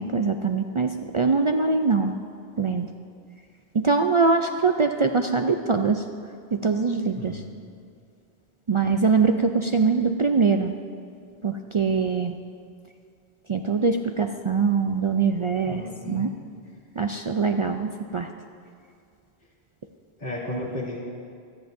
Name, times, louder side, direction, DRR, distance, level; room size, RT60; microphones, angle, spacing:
voice 1, 0.0-2.1 2.6-2.9 3.7-6.0 6.5-7.4 8.7-10.7 11.4-12.4 13.5-16.3 17.0-18.3, right 4 dB, 55° right, 5 dB, 0.3 m, -23 dB
voice 2, 7.2-7.6 15.6-16.3 20.2-21.0, left 1 dB, 55° left, -9 dB, 2.8 m, -33 dB
26.5 x 10.5 x 2.6 m, 2.4 s
omnidirectional pair, 1.1 m